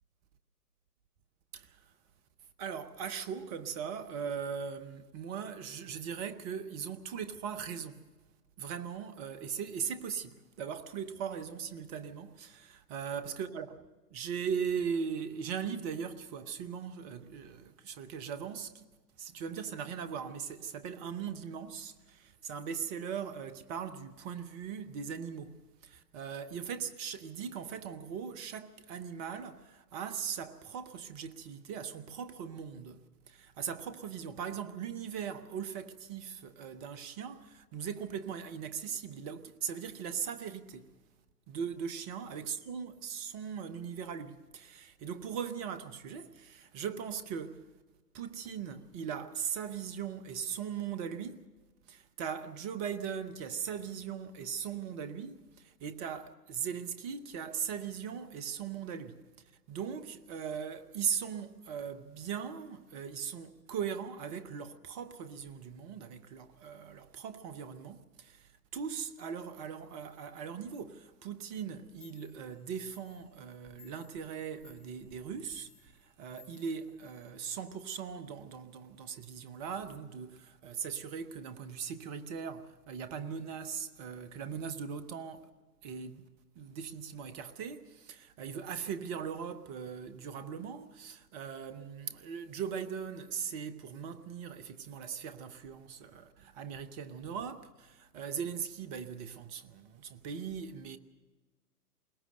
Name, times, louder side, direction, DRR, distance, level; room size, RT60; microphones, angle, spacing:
voice 1, 1.5-1.8 2.6-8.1 8.6-13.8 14.1-18.8 19.2-40.9 41.5-47.7 48.1-51.4 51.9-59.2 59.7-85.5 85.8-86.3 86.6-101.0, right 7 dB, 25° right, 0.8 m, -39 dB
Clock, 71.7-71.8 72.0-77.7, left 9 dB, 5° right, 3.0 m, -63 dB
22.0 x 19.0 x 6.6 m
figure-of-eight pair, 120°, 47 cm